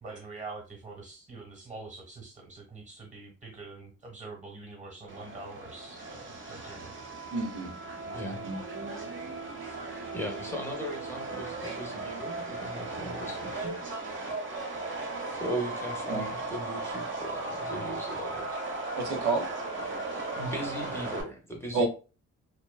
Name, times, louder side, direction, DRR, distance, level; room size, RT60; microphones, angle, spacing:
voice 1, 0.0-6.9, right 3 dB, 25° right, 2 dB, 1.2 m, -45 dB
Subway metro underground, 5.1-21.2, right 2 dB, 40° right, 0.8 m, -37 dB
voice 2, 7.3-7.7 8.4-8.6 16.1-16.3 19.0-19.5 21.7-21.9, right 3 dB, 85° right, 1 dB, 0.8 m, -29 dB
voice 3, 10.1-13.8 15.3-18.5 20.4-21.9, equal, 10° left, 0 dB, 0.7 m, -38 dB
2.7 x 2.2 x 2.2 m, 0.32 s
cardioid pair, 90°, 30 cm